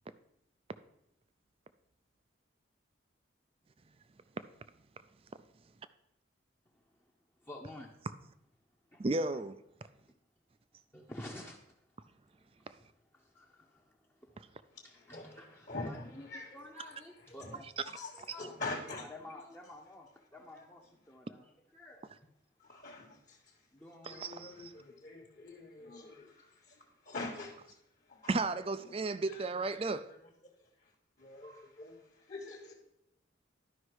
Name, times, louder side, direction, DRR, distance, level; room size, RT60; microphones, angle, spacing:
voice 1, 7.4-7.9 8.9-9.0 9.3-9.4 10.9-11.6 12.7-12.8 13.1-14.3 14.6-17.7 18.1-18.5 19.0-22.0 23.7-24.3, left 1 dB, 10° left, 0.8 m, -51 dB
voice 2, 9.0-9.5 24.0-24.7 28.3-30.0, right 3 dB, 30° right, 0.4 m, -34 dB
voice 3, 15.1-16.5 17.4-17.6 17.9-18.1 18.4-19.1 22.7-23.1 24.1-26.5 27.1-27.5 28.1-28.3 28.9-29.0 29.3-30.0 31.2-32.0 32.3-32.7, left 2 dB, 40° left, 1.3 m, -44 dB
11.5 x 5.5 x 4.7 m
head